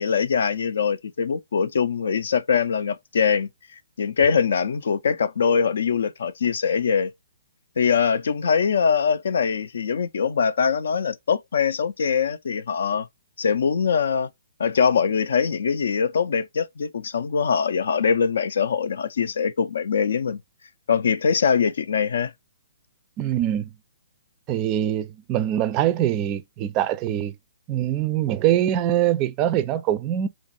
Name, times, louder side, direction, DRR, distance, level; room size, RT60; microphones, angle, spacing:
voice 1, 0.0-3.5 4.0-7.1 7.8-13.1 13.4-14.3 14.6-20.4 20.9-22.3, left 6 dB, 70° left, 0.4 m, -22 dB
voice 2, 23.2-23.7 24.5-27.4 27.7-30.3, right 11 dB, 30° right, 0.4 m, -23 dB
3.1 x 2.5 x 4.0 m
hypercardioid pair, 135°, 0 cm